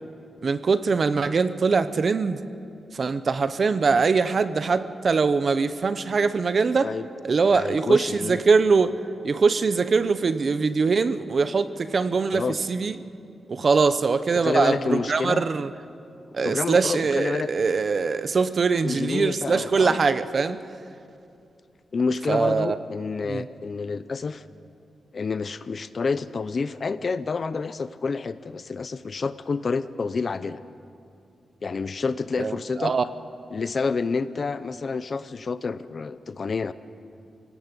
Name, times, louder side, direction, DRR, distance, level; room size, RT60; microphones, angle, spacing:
voice 1, 0.4-2.4 2.9-6.9 7.2-9.0 9.2-13.0 13.5-15.7 16.3-20.6 22.3-22.8 23.3-23.5 32.4-32.5 32.8-33.0, right 4 dB, 45° right, 12 dB, 0.9 m, -22 dB
voice 2, 7.5-8.4 12.3-12.6 14.3-15.5 16.4-17.5 18.8-20.0 21.9-24.4 25.1-30.6 31.6-33.0 33.5-36.7, left 4 dB, 40° left, 14 dB, 0.7 m, -28 dB
26.5 x 17.5 x 8.4 m, 2.6 s
wide cardioid pair, 160°, 0 cm